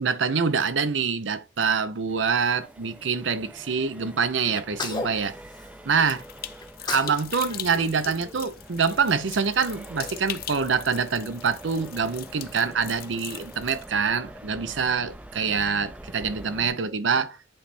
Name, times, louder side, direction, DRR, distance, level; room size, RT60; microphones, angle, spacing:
voice 1, 0.0-5.4 5.9-6.2 6.9-17.4, right 5 dB, 80° right, 0.7 m, -25 dB
Accelerating revving vroom, 2.1-16.7, right 1 dB, 5° right, 0.4 m, -45 dB
Sneeze, 4.5-6.1 6.6-7.2 7.5-8.9, left 3 dB, 25° left, 0.8 m, -35 dB
sound 1, 6.1-13.9, left 12 dB, 50° left, 0.5 m, -40 dB
8.7 x 3.4 x 4.1 m
head